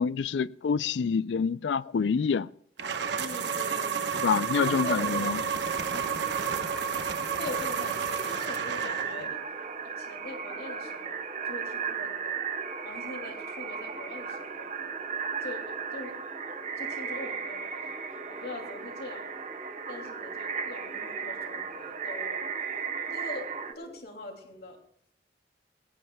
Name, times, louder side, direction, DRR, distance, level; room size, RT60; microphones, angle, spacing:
voice 1, 0.0-2.5 4.1-5.4, left 6 dB, 90° left, 0.4 m, -27 dB
sound 1, 2.8-9.3, right 6 dB, 85° right, 1.1 m, -31 dB
voice 2, 3.1-4.0 4.5-5.4 5.9-6.2 7.4-9.4 9.8-12.4 12.8-14.7 15.4-16.2 16.8-19.4 19.9-22.5 23.1-24.8, left 2 dB, 60° left, 2.7 m, -42 dB
sound 2, 5.0-24.0, right 1 dB, 5° left, 1.8 m, -48 dB
sound 3, 5.6-23.7, right 6 dB, 40° right, 1.0 m, -36 dB
19.0 x 17.0 x 2.3 m
head